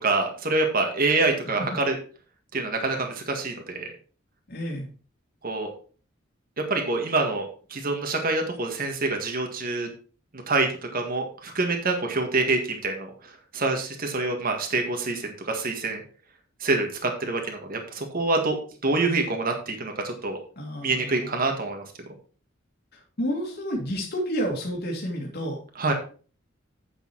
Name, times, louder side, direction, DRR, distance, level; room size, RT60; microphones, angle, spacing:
voice 1, 0.0-1.9 2.5-3.9 5.4-5.7 6.7-9.9 10.3-13.1 13.5-16.0 16.6-18.6 18.8-20.4 20.8-21.9 25.8-25.9, right 3 dB, 45° right, 3 dB, 1.7 m, -26 dB
voice 2, 4.5-4.9 20.6-21.4 22.9-25.6, equal, 55° left, -1 dB, 2.2 m, -30 dB
8.7 x 6.7 x 4.5 m, 0.39 s
head